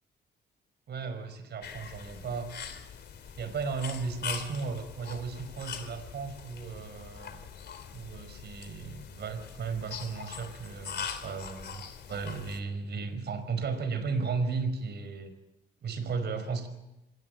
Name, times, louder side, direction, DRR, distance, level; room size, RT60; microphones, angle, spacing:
voice 1, 0.9-2.5 3.4-7.5 7.9-11.8 12.1-15.3 15.8-16.7, right 4 dB, 60° right, 10 dB, 5.1 m, -35 dB
sound 1, 1.6-12.6, left 7 dB, 60° left, 3.2 m, -42 dB
26.0 x 20.0 x 7.9 m, 0.95 s
cardioid pair, 90°, 20 cm